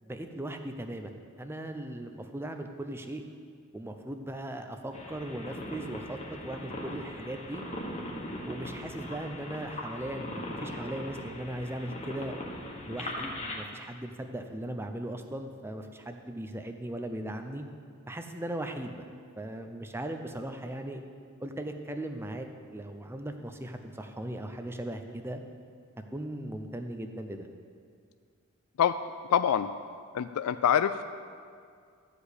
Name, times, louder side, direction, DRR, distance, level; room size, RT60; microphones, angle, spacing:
voice 1, 0.0-3.2 3.7-7.6 8.5-12.3 12.9-17.6 18.1-19.0 19.4-21.0 21.4-25.4 26.1-27.5, right 1 dB, 10° right, 6 dB, 0.6 m, -38 dB
sound 1, 4.9-13.5, left 1 dB, 30° left, 1.5 m, -40 dB
voice 2, 29.3-29.7 30.1-30.9, left 9 dB, 80° left, 11 dB, 0.3 m, -24 dB
13.5 x 5.0 x 8.3 m, 2.2 s
head